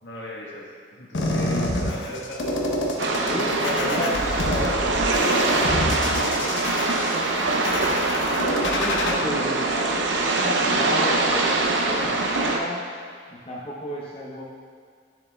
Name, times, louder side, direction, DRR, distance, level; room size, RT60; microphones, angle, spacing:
voice 1, 0.0-2.5 3.5-4.7 6.0-6.6 9.2-9.5, equal, 65° left, -3 dB, 1.4 m, -37 dB
sound 1, 1.1-9.1, left 1 dB, 80° left, 0.9 m, -28 dB
sound 2, 3.0-12.6, right 2 dB, 80° right, 0.7 m, -23 dB
voice 2, 3.2-4.9 8.8-9.6 9.9-12.8 13.3-14.4, left 1 dB, 30° left, -6 dB, 0.8 m, -32 dB
9.9 x 7.0 x 2.3 m, 2.1 s
head